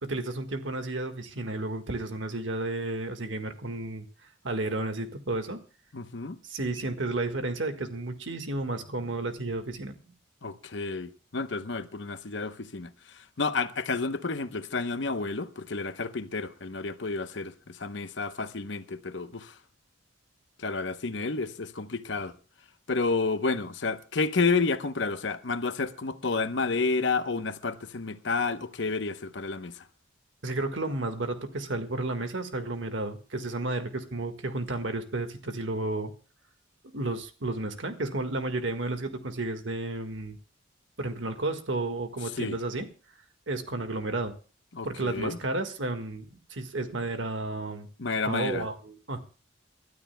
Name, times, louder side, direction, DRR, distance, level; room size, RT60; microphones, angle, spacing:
voice 1, 0.0-4.1 4.4-5.6 6.4-10.0 30.4-36.1 36.9-40.4 41.0-42.9 43.5-44.3 44.8-47.9 48.2-49.2, right 2 dB, 70° right, 1.6 m, -32 dB
voice 2, 5.9-6.4 10.4-19.5 20.6-22.3 22.9-29.8 42.4-42.5 44.7-45.4 48.0-48.7, left 4 dB, 65° left, 0.9 m, -30 dB
29.0 x 12.5 x 2.2 m
head